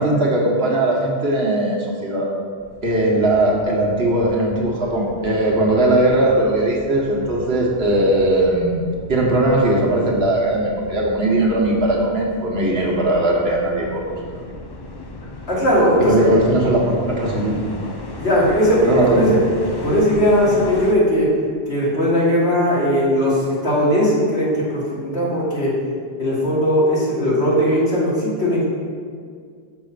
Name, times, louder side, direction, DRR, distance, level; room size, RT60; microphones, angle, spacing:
voice 1, 0.0-2.3 2.8-8.8 9.1-14.2 16.0-17.6 18.8-19.4, right 1 dB, 65° right, -3 dB, 1.7 m, -19 dB
sound 1, 2.6-20.9, left 2 dB, 25° left, 0.6 m, -37 dB
voice 2, 15.5-16.3 18.2-19.4 19.8-21.3 21.7-25.8 26.2-28.6, equal, 75° left, -7 dB, 2.8 m, -18 dB
6.9 x 5.3 x 6.7 m, 2.1 s
omnidirectional pair, 1.1 m